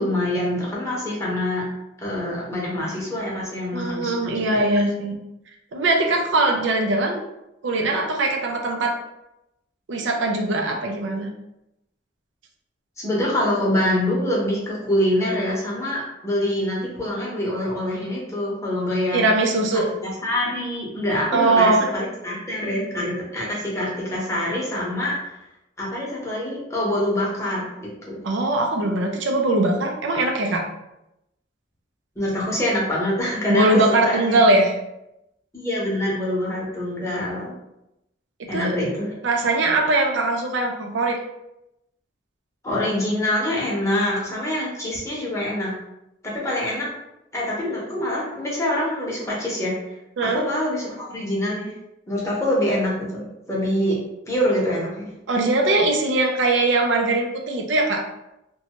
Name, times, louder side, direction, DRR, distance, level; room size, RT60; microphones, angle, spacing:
voice 1, 0.0-1.6 2.0-4.6 13.0-19.2 19.7-25.1 25.8-28.2 32.2-33.7 34.0-34.4 35.5-37.5 38.5-39.1 42.6-45.7 46.2-46.9 47.3-49.9 50.2-51.7 52.1-54.0 54.3-55.1, left 1 dB, 15° left, -5 dB, 0.8 m, -25 dB
voice 2, 3.7-5.1 5.7-7.2 7.6-8.9 9.9-11.3 19.1-19.9 21.3-21.9 28.2-30.7 33.5-34.7 38.5-38.8 39.2-41.2 50.2-50.5 55.3-58.0, right 2 dB, 85° right, 2 dB, 0.5 m, -21 dB
2.5 x 2.2 x 2.9 m, 0.87 s
head